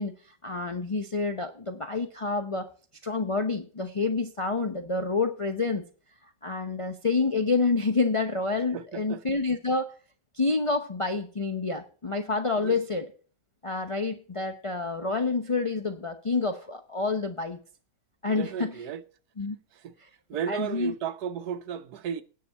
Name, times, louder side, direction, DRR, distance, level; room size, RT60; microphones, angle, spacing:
voice 1, 0.0-2.7 3.0-5.8 6.4-10.0 10.3-13.1 13.6-17.6 18.2-18.7 19.4-19.6 20.5-20.9, left 3 dB, 50° left, 0.3 m, -28 dB
voice 2, 8.7-9.2 12.6-12.8 18.2-19.0 19.7-19.9 20.3-22.2, right 8 dB, 70° right, 1.2 m, -34 dB
9.9 x 6.0 x 8.1 m
omnidirectional pair, 1.8 m